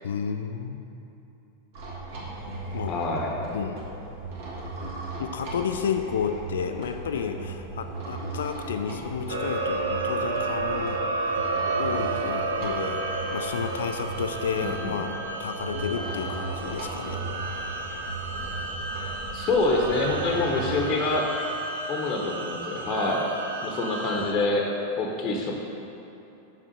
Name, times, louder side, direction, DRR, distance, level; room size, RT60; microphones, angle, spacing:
voice 1, 0.0-0.8 2.7-2.9 3.5-3.8 5.2-17.2, left 7 dB, 65° left, 7 dB, 0.3 m, -32 dB
sound 1, 1.7-20.8, right 3 dB, 50° right, 1.6 m, -37 dB
voice 2, 2.9-3.3 14.6-14.9 19.3-21.3 21.9-23.2 23.6-24.7 25.0-25.5, left 2 dB, 35° left, 0 dB, 0.8 m, -26 dB
sound 2, 9.3-24.3, right 3 dB, 70° right, 0.7 m, -32 dB
6.1 x 5.8 x 5.2 m, 2.9 s
figure-of-eight pair, 90°, 0 cm